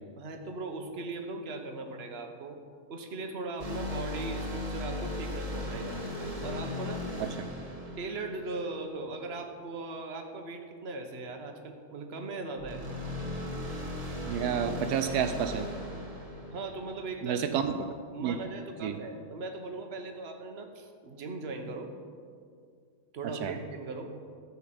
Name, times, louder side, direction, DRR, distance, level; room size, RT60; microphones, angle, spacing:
voice 1, 0.2-2.6 2.9-6.0 6.4-7.1 8.0-12.8 16.5-17.6 18.1-21.9 23.1-24.1, right 3 dB, 45° right, 4 dB, 1.2 m, -39 dB
sound 1, 3.6-9.1 12.6-17.3, left 1 dB, 25° right, 1.5 m, -37 dB
voice 2, 14.2-15.7 17.2-18.0 18.2-18.4 18.8-19.0 23.2-23.5, right 8 dB, 80° right, 8 dB, 1.1 m, -30 dB
13.0 x 5.7 x 7.6 m, 2.2 s
omnidirectional pair, 1.7 m